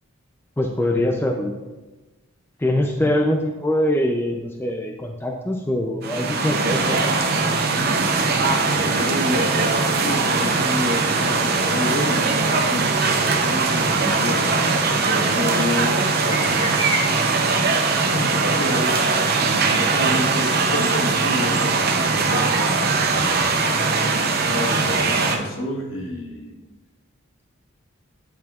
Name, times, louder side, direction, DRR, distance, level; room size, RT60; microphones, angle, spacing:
voice 1, 0.6-1.6 2.6-7.5, left 1 dB, 10° left, 2 dB, 0.4 m, -23 dB
sound 1, 6.0-25.4, right 4 dB, 45° right, 0.6 m, -21 dB
voice 2, 8.2-14.6 15.0-16.7 18.1-19.0 19.3-22.6 23.1-23.7 24.4-26.6, left 1 dB, 65° left, -1 dB, 1.3 m, -29 dB
sound 2, 16.2-17.8 18.0-18.1, right 3 dB, 20° right, 1.2 m, -28 dB
9.4 x 7.3 x 2.4 m, 1.2 s
head